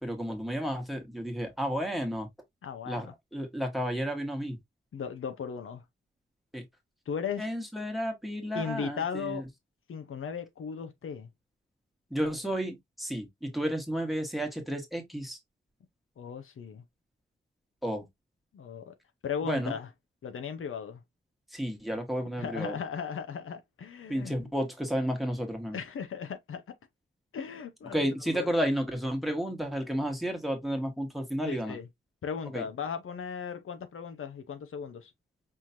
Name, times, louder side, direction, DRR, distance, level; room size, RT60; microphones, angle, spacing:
voice 1, 0.0-2.3 2.9-4.6 6.5-6.6 7.4-9.4 12.1-15.4 17.8-18.0 19.4-19.7 21.5-22.8 24.1-25.8 27.9-31.8 32.5-32.6, equal, ahead, 1.3 m, -32 dB
voice 2, 2.6-3.1 4.9-5.8 7.1-7.5 8.5-9.4 9.9-11.3 16.2-16.8 18.5-18.9 19.2-19.9 20.2-21.0 22.4-24.5 25.7-26.7 27.3-28.5 31.4-31.9 32.2-35.1, left 6 dB, 85° left, 0.8 m, -37 dB
5.6 x 3.1 x 2.7 m
wide cardioid pair, 130°, 21 cm